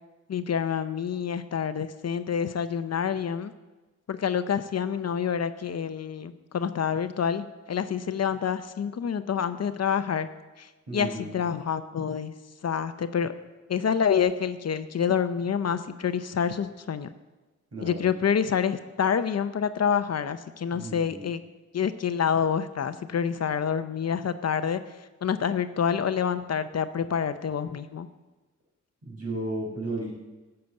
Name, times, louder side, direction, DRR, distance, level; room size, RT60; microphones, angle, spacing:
voice 1, 0.3-3.5 4.1-10.3 10.6-12.3 12.6-13.3 13.7-17.1 17.8-21.4 21.7-24.8 25.2-28.1, left 7 dB, 55° left, 11 dB, 0.7 m, -27 dB
voice 2, 10.9-11.4 17.7-18.1 20.7-21.2 29.1-30.1, right 2 dB, 50° right, -3 dB, 5.2 m, -34 dB
12.5 x 6.9 x 7.8 m, 1.2 s
wide cardioid pair, 100°, 31 cm